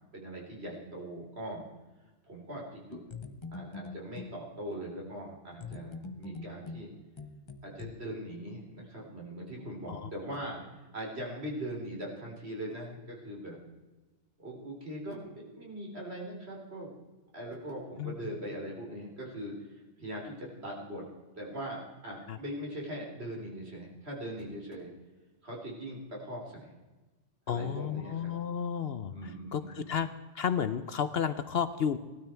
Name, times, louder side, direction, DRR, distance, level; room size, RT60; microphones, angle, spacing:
voice 1, 0.1-1.6 2.2-3.0 3.5-6.9 7.6-13.6 14.4-16.9 17.3-19.5 20.0-21.1 21.4-24.9 25.4-26.7 27.5-28.3 29.1-29.9, right 1 dB, 55° right, -2 dB, 3.9 m, -41 dB
sound 1, 2.9-4.4 5.6-7.9, left 4 dB, 25° left, 0.8 m, -43 dB
voice 2, 18.0-18.4 22.3-22.4 27.5-30.1 30.3-32.0, left 8 dB, 60° left, 12 dB, 0.8 m, -32 dB
17.5 x 12.5 x 4.5 m, 1.2 s
omnidirectional pair, 1.3 m